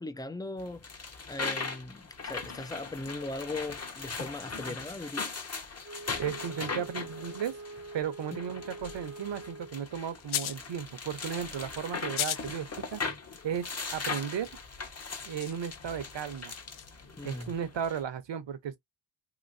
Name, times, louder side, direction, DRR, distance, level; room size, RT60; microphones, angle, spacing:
voice 1, 0.0-5.3 17.2-17.5, left 2 dB, 10° left, 0.4 m, -39 dB
sound 1, 0.6-18.0, left 4 dB, 30° left, 0.9 m, -40 dB
Wind instrument woodwind instrument, 5.8-10.0, right 2 dB, 25° right, 0.7 m, -45 dB
voice 2, 6.2-7.6 7.9-13.0 13.4-14.5 15.3-16.5 17.2-18.8, right 8 dB, 60° right, 0.9 m, -35 dB
sound 2, 10.2-10.7 12.0-12.5 12.9-13.0 14.4-14.5 15.0-16.9, left 11 dB, 80° left, 0.7 m, -36 dB
3.0 x 2.9 x 2.6 m
wide cardioid pair, 100°, 49 cm